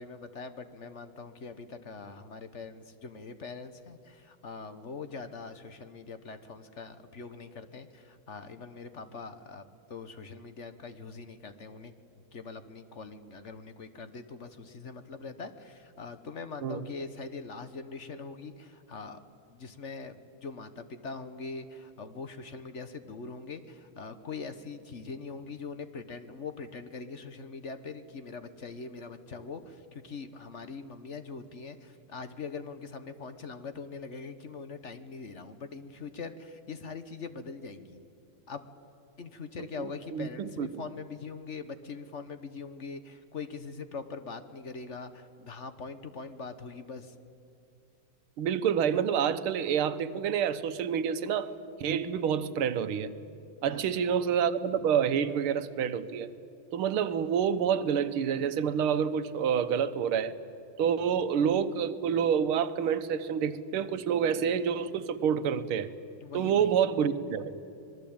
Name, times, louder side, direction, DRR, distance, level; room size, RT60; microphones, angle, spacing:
voice 1, 0.0-9.6 9.9-11.9 12.3-19.2 19.5-38.0 38.5-38.7 39.2-47.1 53.7-54.0 66.2-66.7, left 4 dB, 45° left, 10 dB, 1.1 m, -42 dB
voice 2, 39.8-40.7 48.4-51.5 51.8-53.1 53.6-56.3 56.7-60.4 60.8-65.9 66.3-67.6, right 8 dB, 85° right, 12 dB, 1.8 m, -28 dB
26.0 x 20.5 x 8.8 m, 2.6 s
omnidirectional pair, 2.3 m